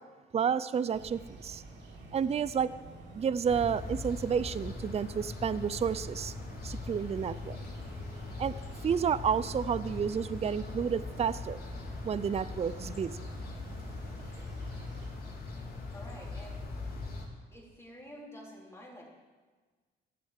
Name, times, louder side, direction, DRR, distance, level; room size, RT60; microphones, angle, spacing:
voice 1, 0.3-1.6 2.1-2.8 3.1-6.3 6.6-7.6 8.4-8.5 8.8-11.6 12.0-13.3, right 7 dB, 30° right, 16 dB, 0.5 m, -30 dB
sound 1, 0.9-15.1, right 2 dB, 65° right, 3.5 m, -50 dB
sound 2, 3.4-17.2, left 3 dB, 50° left, 3.6 m, -41 dB
voice 2, 15.9-16.6 17.5-19.1, equal, 15° left, -2 dB, 3.5 m, -49 dB
15.0 x 7.0 x 8.3 m, 1.4 s
cardioid pair, 90°, 20 cm